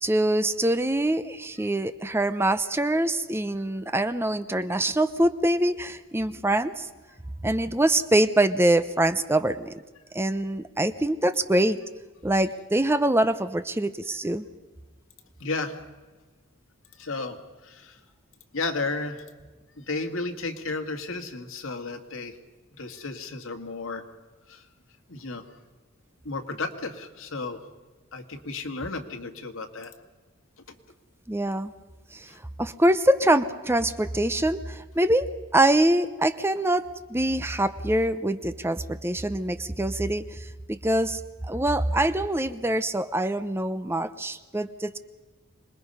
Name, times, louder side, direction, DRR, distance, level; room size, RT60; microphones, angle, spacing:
voice 1, 0.0-6.9 7.4-9.8 10.1-11.8 12.2-14.4 31.3-31.7 32.1-32.3 32.6-45.0, right 1 dB, 10° right, 12 dB, 0.6 m, -24 dB
voice 2, 15.4-15.7 17.0-17.4 17.6-18.0 18.5-19.3 19.8-22.4 22.7-24.0 24.5-24.6 25.1-25.4 26.2-27.6 28.1-29.9 32.3-32.4 41.5-41.6 43.8-44.0, left 3 dB, 80° left, 6 dB, 2.0 m, -33 dB
26.0 x 21.0 x 5.5 m, 1.3 s
head